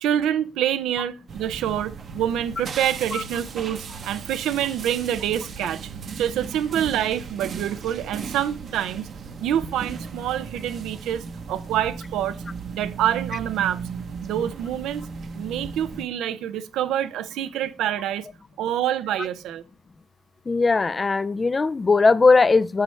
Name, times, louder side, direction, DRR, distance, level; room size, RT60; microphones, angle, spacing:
voice 1, 0.0-5.8 6.2-9.1 9.4-12.4 12.7-13.8 14.2-15.0 15.3-18.3 18.6-19.6, right 10 dB, 85° right, 0.6 m, -26 dB
sound 1, 1.3-16.0, right 5 dB, 55° right, 0.9 m, -36 dB
voice 2, 20.5-22.8, left 4 dB, 30° left, 0.3 m, -19 dB
8.0 x 6.3 x 3.2 m
cardioid pair, 90°, 0 cm